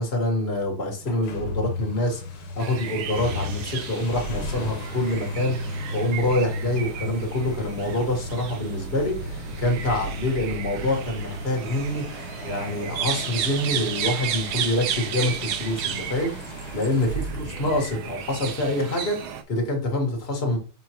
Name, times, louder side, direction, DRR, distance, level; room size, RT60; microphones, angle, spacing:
voice 1, 0.0-16.4 16.7-20.6, left 1 dB, 30° left, 2 dB, 1.8 m, -26 dB
sound 1, 1.0-18.5, left 1 dB, 85° left, 2.0 m, -35 dB
sound 2, 2.6-19.4, right 9 dB, 75° right, 1.5 m, -34 dB
6.9 x 5.0 x 3.0 m, 0.36 s
omnidirectional pair, 2.3 m